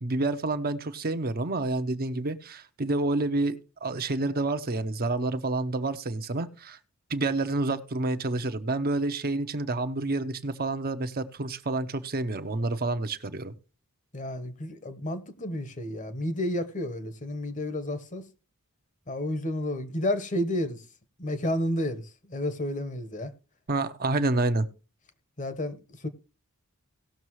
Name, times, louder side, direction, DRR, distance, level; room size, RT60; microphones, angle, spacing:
voice 1, 0.0-6.8 7.1-13.5 23.7-24.7, right 2 dB, 45° right, 0.8 m, -28 dB
voice 2, 14.1-18.3 19.1-20.8 21.2-22.0 22.3-23.3 25.4-26.1, left 1 dB, 35° left, 1.2 m, -31 dB
18.0 x 6.6 x 3.1 m
head